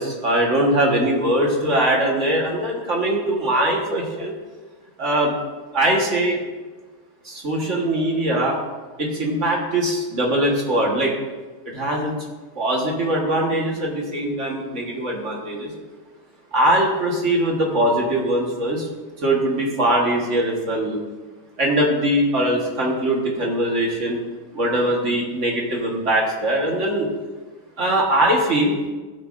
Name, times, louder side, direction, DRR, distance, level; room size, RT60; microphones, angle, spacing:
voice 1, 0.0-4.3 5.0-5.3 5.7-6.4 7.2-8.6 9.0-11.1 11.7-12.1 12.5-15.7 16.5-18.9 19.2-21.0 21.6-24.2 24.5-27.1 27.8-28.8, right 1 dB, 40° right, -1 dB, 1.6 m, -21 dB
16.5 x 6.3 x 2.6 m, 1.3 s
omnidirectional pair, 2.4 m